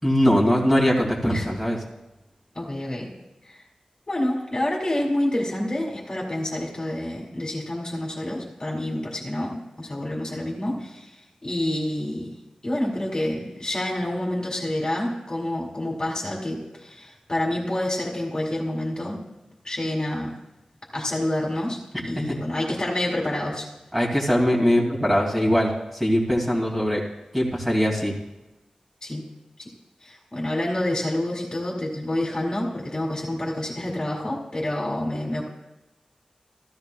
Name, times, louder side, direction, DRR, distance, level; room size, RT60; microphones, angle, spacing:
voice 1, 0.0-1.8 22.2-22.3 23.9-27.0 27.3-28.1, equal, 5° right, -3 dB, 2.2 m, -21 dB
voice 2, 2.5-3.1 3.4-3.6 4.1-11.2 11.4-12.3 12.6-19.2 19.6-20.3 20.9-23.7 29.0-29.2 29.6-29.7 30.0-35.4, left 1 dB, 30° left, -3 dB, 2.0 m, -28 dB
14.5 x 13.5 x 2.3 m, 0.99 s
wide cardioid pair, 105°, 2 cm